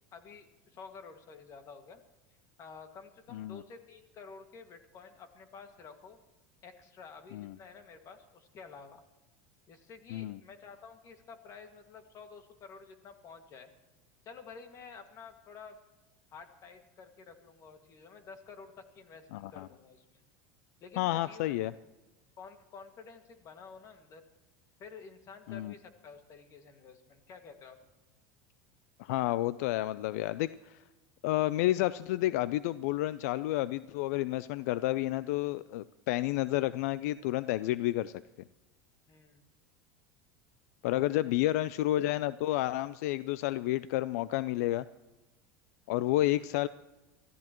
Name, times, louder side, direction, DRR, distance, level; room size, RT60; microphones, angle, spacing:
voice 1, 0.1-2.0 2.6-6.2 6.6-9.0 9.7-13.7 14.3-15.8 16.3-20.2 20.8-21.5 22.4-24.2 24.8-27.8 39.1-39.5 40.9-41.4, left 5 dB, 40° left, 6 dB, 1.9 m, -51 dB
voice 2, 3.3-3.6 7.3-7.5 10.1-10.4 19.3-19.7 21.0-21.7 25.5-25.7 29.0-30.8 31.2-38.1 40.8-44.8 45.9-46.7, left 15 dB, 80° left, 16 dB, 0.4 m, -30 dB
24.0 x 14.5 x 3.0 m, 1.1 s
supercardioid pair, 130°, 8 cm